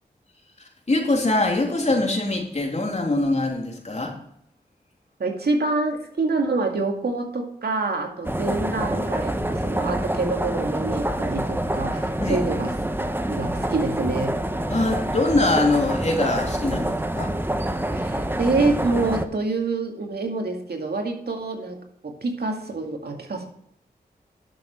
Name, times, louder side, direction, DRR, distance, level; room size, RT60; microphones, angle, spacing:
voice 1, 0.6-4.1 12.2-12.4 14.7-17.3, left 2 dB, 40° left, 1 dB, 3.3 m, -23 dB
voice 2, 5.2-12.7 13.0-14.4 17.9-23.5, right 3 dB, 70° right, 3 dB, 2.2 m, -26 dB
sound 1, 8.2-19.3, right 1 dB, 10° right, 1.2 m, -26 dB
11.5 x 7.0 x 4.5 m, 0.70 s
cardioid pair, 45°, 17 cm